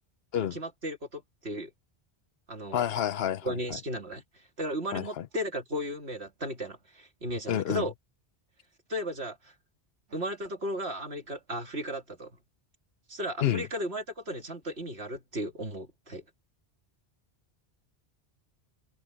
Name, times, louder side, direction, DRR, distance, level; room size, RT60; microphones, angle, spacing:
voice 1, 0.4-1.7 2.5-2.8 3.4-4.2 4.6-7.9 8.9-9.5 10.1-12.3 13.1-16.2, equal, 85° right, 2.9 m, -35 dB
voice 2, 2.7-3.6 4.9-5.3 7.5-7.9 13.4-13.7, left 10 dB, 70° left, 0.9 m, -29 dB
omnidirectional pair, 1.1 m